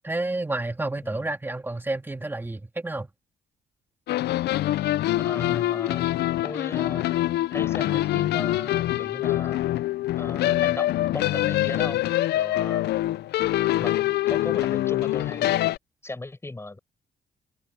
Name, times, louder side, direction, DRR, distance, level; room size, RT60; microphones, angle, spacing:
voice 1, 0.0-3.1, right 2 dB, 10° right, 2.0 m, -30 dB
sound 1, 4.1-15.8, left 15 dB, 75° left, 0.4 m, -24 dB
voice 2, 5.2-6.1 6.4-7.1 7.5-9.6 10.2-12.0 12.3-12.9 13.8-15.6 16.0-16.8, left 2 dB, 15° left, 4.6 m, -37 dB
open air
cardioid pair, 110°, 17 cm